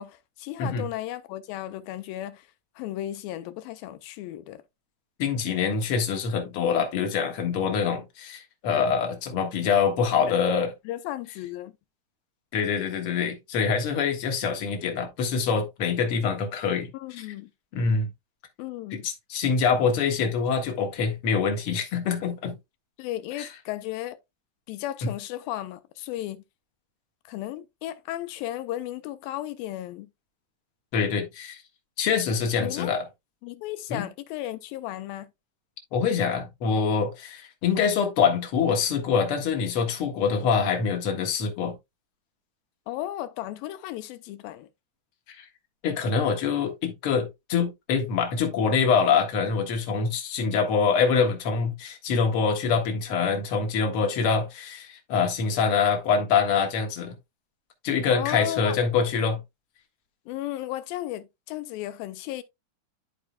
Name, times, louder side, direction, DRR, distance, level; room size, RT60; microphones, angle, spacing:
voice 1, 0.0-2.5 2.8-4.6 10.3-10.4 10.9-11.7 16.9-17.5 18.6-19.0 23.0-24.2 24.7-26.4 27.3-30.1 32.6-32.9 33.4-35.3 42.9-44.7 58.1-58.8 60.3-62.4, left 14 dB, 80° left, 2.1 m, -34 dB
voice 2, 5.2-10.7 12.5-17.3 17.7-18.1 18.9-22.5 23.3-23.5 25.0-25.1 30.9-31.6 32.0-33.1 33.9-34.0 35.9-41.7 45.4-45.5 45.8-57.1 57.8-59.4, left 6 dB, 60° left, 1.5 m, -25 dB
12.0 x 4.9 x 2.2 m
omnidirectional pair, 4.6 m